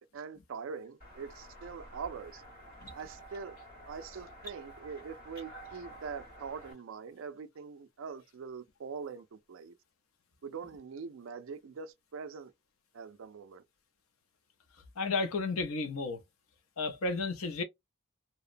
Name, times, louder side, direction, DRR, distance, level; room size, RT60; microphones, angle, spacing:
voice 1, 0.0-2.4 2.9-3.6 3.9-9.7 10.4-12.5 12.9-13.6, right 5 dB, 60° right, 0.4 m, -43 dB
Pressing a doorbell, 1.0-6.7, right 1 dB, 40° left, 1.6 m, -50 dB
voice 2, 15.0-16.2 16.8-17.6, left 3 dB, 70° left, 0.6 m, -32 dB
2.8 x 2.0 x 2.5 m
head